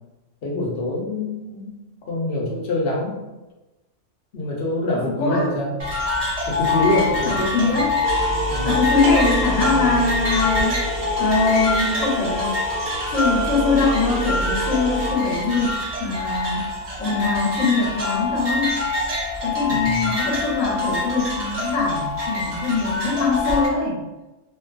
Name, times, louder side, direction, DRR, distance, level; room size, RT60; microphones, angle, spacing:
voice 1, 0.4-1.7 2.1-3.2 4.3-5.7 6.5-7.8 8.5-8.7 19.7-20.2, left 2 dB, 55° left, -3 dB, 0.8 m, -25 dB
voice 2, 5.1-5.6 7.2-8.0 8.6-10.8 11.2-12.6 13.1-16.7 17.0-18.8 19.4-24.0, left 3 dB, 80° left, -2 dB, 1.1 m, -22 dB
sound 1, 5.8-23.7, left 2 dB, 55° right, 0.4 m, -25 dB
sound 2, 8.0-15.1, right 1 dB, 85° right, 1.1 m, -27 dB
2.6 x 2.3 x 2.3 m, 1.1 s
omnidirectional pair, 1.4 m